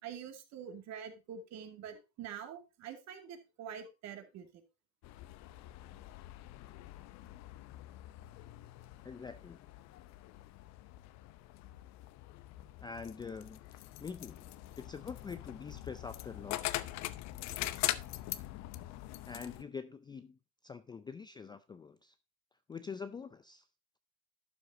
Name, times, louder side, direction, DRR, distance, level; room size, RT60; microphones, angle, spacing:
voice 1, 0.0-4.5, right 8 dB, 45° right, 2.5 m, -46 dB
sound 1, 5.0-19.6, left 15 dB, 50° left, 0.8 m, -43 dB
voice 2, 9.0-9.6 12.8-16.7 19.3-22.2 22.7-23.7, left 5 dB, 10° left, 0.4 m, -45 dB
12.0 x 7.8 x 2.8 m
supercardioid pair, 115°, 36 cm